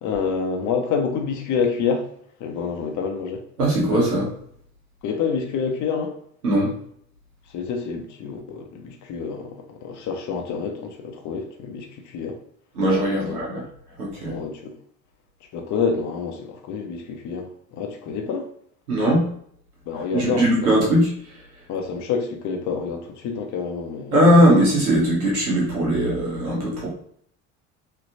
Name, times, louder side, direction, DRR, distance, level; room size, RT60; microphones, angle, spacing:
voice 1, 0.0-2.1 2.4-3.4 5.0-6.1 7.5-12.4 13.2-13.4 14.3-14.7 15.5-18.5 19.9-20.7 21.7-24.2, left 5 dB, 40° left, 0.8 m, -27 dB
voice 2, 3.6-4.3 6.4-6.7 12.7-13.6 14.0-14.4 18.9-19.3 20.1-21.1 24.1-26.9, equal, 85° right, 1.2 m, -19 dB
3.2 x 2.9 x 2.7 m
figure-of-eight pair, 65°, 44 cm